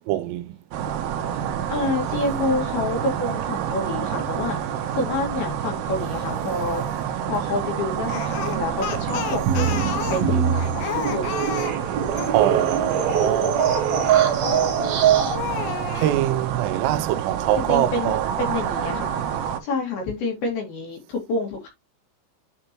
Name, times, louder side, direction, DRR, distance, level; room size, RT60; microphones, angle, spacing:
voice 1, 0.1-0.5 12.3-13.6 16.0-18.3, right 13 dB, 90° right, 3.3 m, -23 dB
sound 1, 0.7-19.6, right 9 dB, 75° right, 2.5 m, -28 dB
voice 2, 1.7-4.6 4.9-6.8 7.3-11.2 17.6-19.1 19.6-21.7, left 2 dB, 55° left, 3.6 m, -28 dB
Speech, 8.1-12.4 14.4-14.8 15.3-16.2, left 10 dB, 85° left, 3.8 m, -31 dB
sound 2, 9.1-15.4, right 7 dB, 55° right, 3.4 m, -23 dB
9.5 x 4.3 x 3.0 m
omnidirectional pair, 5.9 m